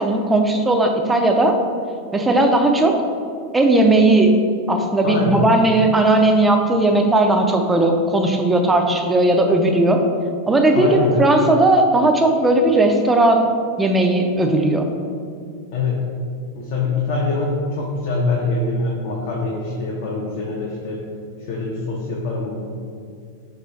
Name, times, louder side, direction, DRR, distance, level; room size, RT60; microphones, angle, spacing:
voice 1, 0.0-1.6 2.1-3.0 3.5-4.3 4.7-10.0 10.5-13.5 13.8-14.9, right 2 dB, 10° right, 3 dB, 0.3 m, -16 dB
voice 2, 5.0-5.4 10.7-11.2 15.7-16.0 16.5-21.0 21.5-22.6, left 3 dB, 50° left, -3 dB, 0.5 m, -24 dB
3.0 x 2.6 x 4.1 m, 2.3 s
figure-of-eight pair, 90°, 0 cm